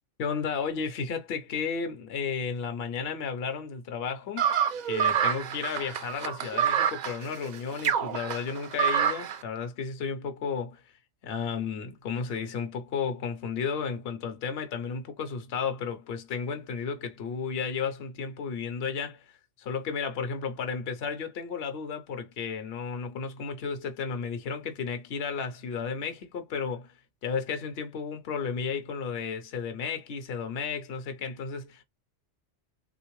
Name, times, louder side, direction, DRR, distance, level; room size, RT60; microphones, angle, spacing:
voice 1, 0.2-4.5 4.9-10.8 11.2-26.9 27.2-31.8, left 6 dB, 60° left, 0.9 m, -33 dB
sound 1, 4.4-9.4, right 8 dB, 70° right, 0.4 m, -27 dB
3.6 x 2.5 x 3.0 m
omnidirectional pair, 1.3 m